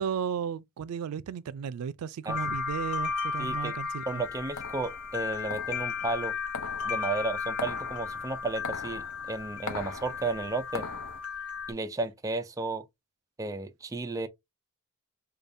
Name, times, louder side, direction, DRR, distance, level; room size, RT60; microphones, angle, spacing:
voice 1, 0.0-4.2, right 7 dB, 85° right, 0.3 m, -34 dB
sound 1, 2.3-11.7, left 5 dB, 90° left, 0.9 m, -35 dB
voice 2, 3.4-3.7 4.1-6.4 6.8-10.9 11.7-12.8 13.4-14.3, right 3 dB, 15° right, 0.4 m, -33 dB
sound 2, 4.2-11.2, left 4 dB, 70° left, 0.6 m, -42 dB
5.0 x 2.3 x 2.6 m
head